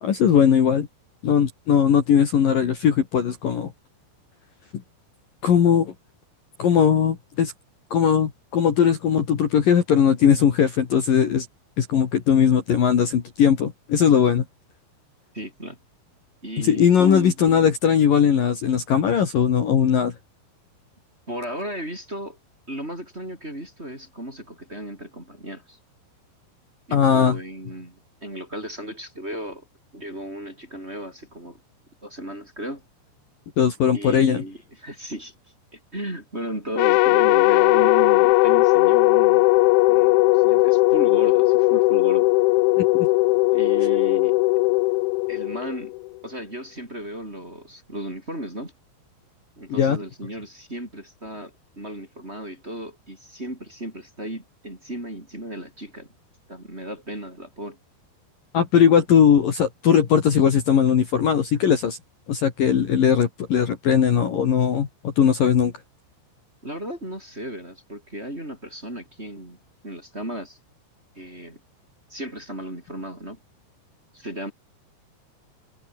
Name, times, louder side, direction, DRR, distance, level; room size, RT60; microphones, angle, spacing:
voice 1, 0.0-0.9 1.2-3.7 5.4-5.9 6.6-7.5 7.9-11.5 11.8-14.5 16.6-20.1 26.9-27.4 33.6-34.4 42.8-43.1 49.7-50.0 58.5-62.0 62.3-65.7, left 8 dB, 50° left, 3.5 m, -19 dB
voice 2, 15.3-15.8 16.4-17.4 21.3-22.4 22.7-25.8 26.9-29.7 29.9-31.6 32.0-32.8 33.9-35.3 35.7-39.5 39.9-42.3 43.5-44.4 45.3-45.9 46.2-48.7 49.6-56.1 56.5-57.8 66.6-69.6 69.8-70.6 71.1-71.6 72.1-73.4 74.1-74.5, right 1 dB, 15° right, 4.7 m, -35 dB
sound 1, 36.8-46.1, left 23 dB, 80° left, 2.9 m, -18 dB
omnidirectional pair, 5.7 m